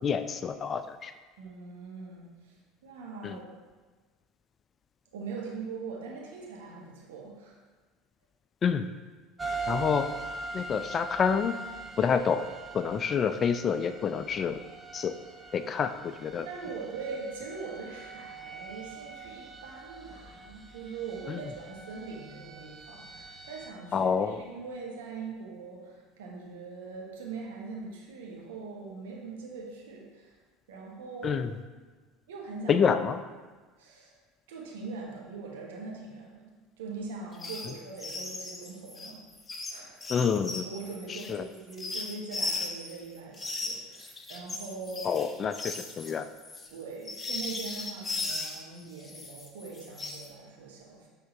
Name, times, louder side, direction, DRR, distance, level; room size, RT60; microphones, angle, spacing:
voice 1, 0.0-1.1 3.2-3.4 8.6-8.9 9.7-10.1 10.5-11.5 12.0-12.5 12.7-14.6 14.9-15.1 15.5-16.5 21.3-21.4 23.9-24.4 31.2-31.5 32.7-33.2 40.1-40.6 41.1-41.4 45.0-46.3, left 6 dB, 35° left, 10 dB, 0.3 m, -28 dB
voice 2, 1.4-3.5 5.1-7.6 9.4-9.9 16.4-30.4 30.7-31.5 32.3-32.9 33.8-34.2 34.5-36.5 36.8-39.2 39.7-40.1 40.6-45.1 46.7-51.1, right 4 dB, 75° right, -2 dB, 1.1 m, -42 dB
sound 1, 9.4-23.7, right 3 dB, 20° right, 0.7 m, -42 dB
sound 2, 37.3-37.7 38.0-42.9 43.3-48.6 49.0-50.3, left 2 dB, 20° left, 0.8 m, -37 dB
5.7 x 3.7 x 4.4 m, 1.4 s
hypercardioid pair, 75°, 0 cm